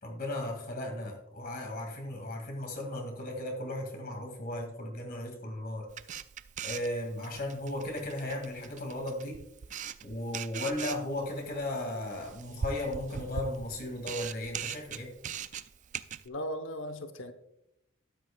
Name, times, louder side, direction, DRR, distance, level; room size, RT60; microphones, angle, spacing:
voice 1, 0.0-5.9 6.6-9.4 10.0-15.1, left 1 dB, 45° left, 2 dB, 2.1 m, -36 dB
Camera, 5.9-16.3, right 7 dB, 35° right, 0.3 m, -41 dB
voice 2, 16.2-17.3, equal, 65° left, 8 dB, 0.9 m, -37 dB
12.5 x 9.4 x 2.3 m, 0.82 s
head